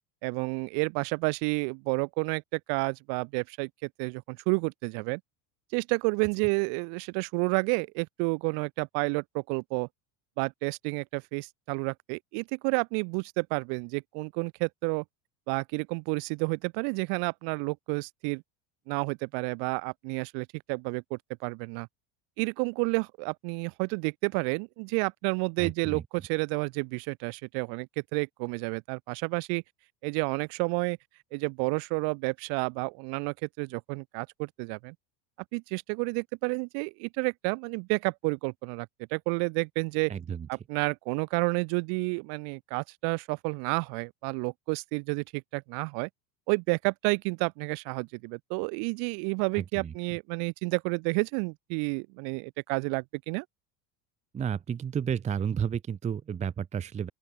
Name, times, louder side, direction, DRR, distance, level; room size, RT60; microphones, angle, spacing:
voice 1, 0.2-5.2 5.7-9.9 10.4-15.0 15.5-18.4 18.9-21.9 22.4-29.6 30.0-31.0 31.3-34.9 35.5-40.1 40.5-46.1 46.5-53.4, right 39 dB, 60° right, 2.2 m, -30 dB
voice 2, 25.6-26.0 40.1-40.5 49.5-49.9 54.3-57.1, right 8 dB, 15° right, 0.8 m, -32 dB
open air
cardioid pair, 170°, 45 cm